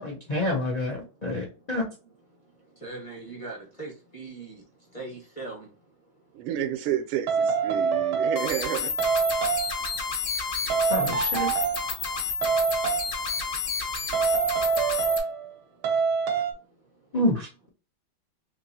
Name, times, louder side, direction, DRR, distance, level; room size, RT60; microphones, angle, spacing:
voice 1, 0.0-1.8 10.9-11.5 17.1-17.7, left 1 dB, 70° left, 0.3 m, -28 dB
voice 2, 2.8-4.6 4.9-5.7, right 3 dB, 20° left, 0.9 m, -39 dB
voice 3, 6.3-8.9, right 11 dB, 85° right, 1.5 m, -30 dB
sound 1, 7.3-8.7 9.0-9.9 10.7-12.0 12.4-13.2 14.1-15.5 15.8-16.5, right 6 dB, 70° right, 1.1 m, -25 dB
sound 2, 8.4-15.2, left 5 dB, 55° left, 1.2 m, -30 dB
3.6 x 2.9 x 2.7 m
omnidirectional pair, 2.3 m